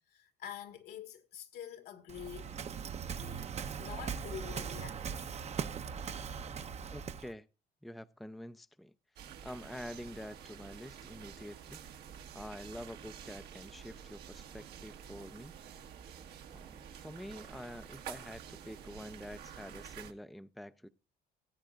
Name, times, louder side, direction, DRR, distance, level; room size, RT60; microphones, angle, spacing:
voice 1, 0.1-2.5 3.0-5.4, left 9 dB, 75° left, 1.7 m, -47 dB
Waves surf, 2.1-7.3, right 7 dB, 40° right, 0.8 m, -40 dB
voice 2, 6.9-7.5 7.8-8.9 9.4-11.8 12.3-15.6 16.5-20.9, left 1 dB, ahead, 0.5 m, -47 dB
sound 1, 9.2-20.1, right 8 dB, 75° right, 1.5 m, -49 dB
17.0 x 8.7 x 2.4 m
cardioid pair, 110°, 17 cm